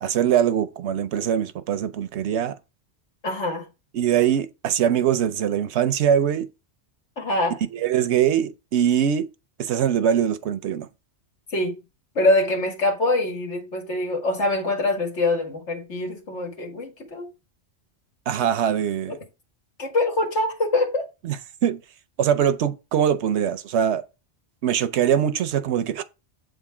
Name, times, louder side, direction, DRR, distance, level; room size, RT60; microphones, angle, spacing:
voice 1, 0.0-2.5 3.9-6.5 7.7-9.3 9.6-10.9 18.3-19.2 21.2-21.8 22.2-24.0 24.6-26.0, right 9 dB, 75° right, 0.9 m, -22 dB
voice 2, 3.2-3.7 7.2-7.6 11.5-11.7 12.2-17.3 19.1-19.2 19.8-21.1, left 2 dB, 85° left, 2.0 m, -24 dB
7.9 x 3.7 x 4.8 m
omnidirectional pair, 1.2 m